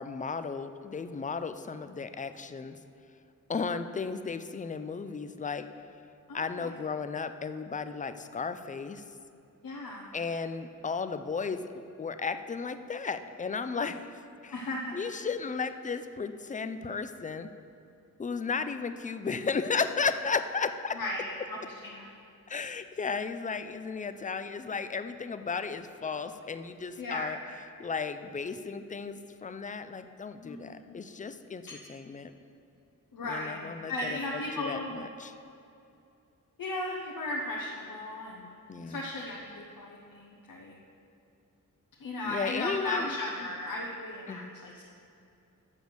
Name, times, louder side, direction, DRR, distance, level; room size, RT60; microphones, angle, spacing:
voice 1, 0.0-2.8 3.5-5.7 6.3-9.0 10.1-11.6 12.0-14.1 14.4-14.5 14.9-17.5 18.2-21.0 22.5-27.4 27.8-32.3 33.2-34.2 34.6-35.3 38.7-39.0 42.2-43.1 44.3-44.5, left 5 dB, 25° left, 10 dB, 0.3 m, -34 dB
voice 2, 6.3-6.7 9.6-10.2 14.5-15.0 20.9-22.1 27.0-27.4 30.4-31.0 31.7-31.8 33.1-34.9 36.6-38.5 38.9-40.8 42.0-44.8, left 2 dB, 80° left, -2 dB, 0.9 m, -36 dB
7.2 x 6.6 x 6.2 m, 2.6 s
wide cardioid pair, 110°, 34 cm